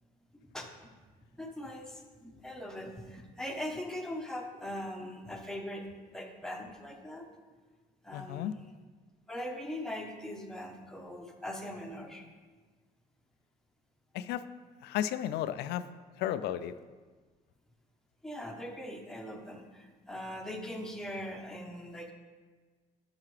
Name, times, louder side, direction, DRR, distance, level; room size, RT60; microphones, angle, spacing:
voice 1, 1.4-7.3 8.0-8.7 9.3-12.3 18.2-22.1, left 1 dB, 5° left, 1 dB, 0.9 m, -41 dB
voice 2, 8.1-8.5 14.1-14.4 14.8-15.9 16.2-16.7, left 11 dB, 80° left, 13 dB, 0.4 m, -33 dB
11.5 x 4.8 x 3.2 m, 1.4 s
cardioid pair, 110°, 17 cm